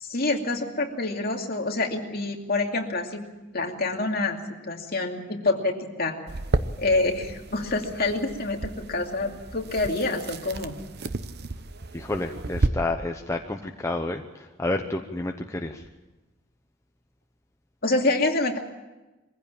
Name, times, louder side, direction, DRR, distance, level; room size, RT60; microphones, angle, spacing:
voice 1, 0.0-3.2 3.5-6.1 6.8-10.7 17.8-18.6, left 2 dB, 50° left, 2 dB, 2.5 m, -27 dB
sound 1, 6.3-12.7, right 2 dB, 50° right, 0.8 m, -32 dB
voice 2, 11.9-15.8, left 2 dB, 15° left, 3 dB, 0.9 m, -30 dB
22.5 x 15.5 x 8.8 m, 1.1 s
head